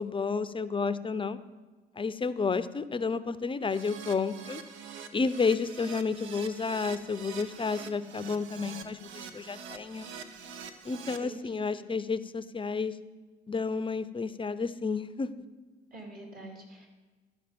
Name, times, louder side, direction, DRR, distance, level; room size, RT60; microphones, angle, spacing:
voice 1, 0.0-1.4 2.0-4.6 5.1-10.1 10.8-13.0 13.5-15.3, left 4 dB, 25° left, 14 dB, 0.5 m, -31 dB
Keyboard (musical), 3.7-11.2, right 6 dB, 85° right, 0.7 m, -45 dB
voice 2, 10.9-11.8 15.9-16.9, right 1 dB, 50° right, 1 dB, 2.8 m, -46 dB
12.5 x 5.2 x 5.1 m, 1.3 s
supercardioid pair, 60°, 19 cm